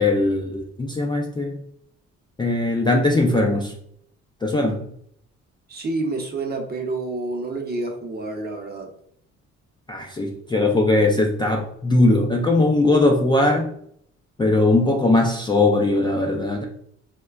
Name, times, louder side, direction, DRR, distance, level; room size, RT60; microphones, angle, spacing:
voice 1, 0.0-1.6 2.4-3.8 4.4-4.9 9.9-13.8 14.4-16.6, left 2 dB, 15° left, 1 dB, 0.3 m, -20 dB
voice 2, 5.7-8.9, right 2 dB, 30° right, 2 dB, 0.7 m, -28 dB
3.6 x 2.2 x 2.4 m, 0.69 s
cardioid pair, 90°, 30 cm